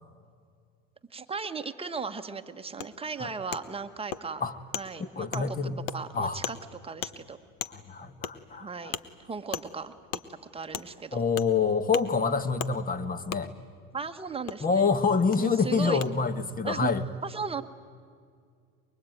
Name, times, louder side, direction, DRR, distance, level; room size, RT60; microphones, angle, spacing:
voice 1, 1.1-4.4 4.7-5.6 5.9-6.6 6.8-7.4 8.5-8.9 9.2-9.9 10.5-11.2 13.9-14.9 15.4-16.0 16.6-16.9 17.2-17.6, right 5 dB, 15° right, 7 dB, 1.4 m, -36 dB
Wood, 2.8-2.9 3.5-3.6 4.1-4.2 4.7-4.8 5.3-5.4 5.9-6.0 6.4-6.6 7.0-7.1 7.6-7.7 8.2-8.3 8.9-9.0 9.5-9.7 10.1-10.2 10.7-10.9 11.4-11.5 11.9-12.0 12.6-12.7 13.3-13.4 14.5-14.6 15.3-15.4 16.0-16.1, left 11 dB, 70° left, 1.3 m, -34 dB
voice 2, 5.0-5.8 6.1-6.4 7.7-8.9 11.1-13.5 14.6-17.0, left 5 dB, 20° left, 14 dB, 1.4 m, -27 dB
24.0 x 22.5 x 9.3 m, 2.2 s
supercardioid pair, 105°, 38 cm